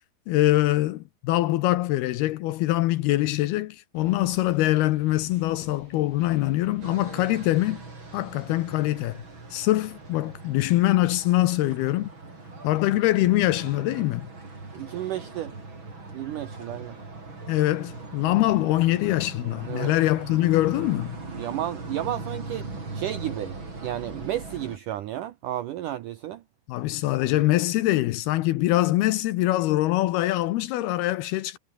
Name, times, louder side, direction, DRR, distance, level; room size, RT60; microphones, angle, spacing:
voice 1, 0.3-7.8 8.1-9.2 9.5-12.1 12.6-14.3 17.5-21.2 26.7-31.6, left 16 dB, 75° left, 2.5 m, -23 dB
sound 1, 3.9-11.2, right 4 dB, 50° right, 7.9 m, -52 dB
sound 2, 6.8-24.8, right 3 dB, 25° right, 6.2 m, -40 dB
voice 2, 14.7-15.5 16.1-17.0 19.7-19.9 21.3-26.4, right 13 dB, 85° right, 1.8 m, -32 dB
omnidirectional pair, 5.1 m